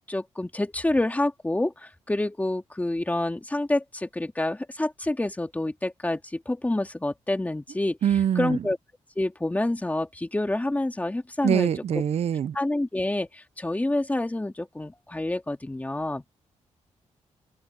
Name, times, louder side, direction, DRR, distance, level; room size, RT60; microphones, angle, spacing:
voice 1, 0.1-8.0 8.4-8.8 9.2-11.7 12.5-16.2, left 1 dB, 10° left, 2.3 m, -28 dB
voice 2, 8.0-8.6 11.4-12.6, right 9 dB, 60° right, 0.5 m, -24 dB
open air
cardioid pair, 95°, 12 cm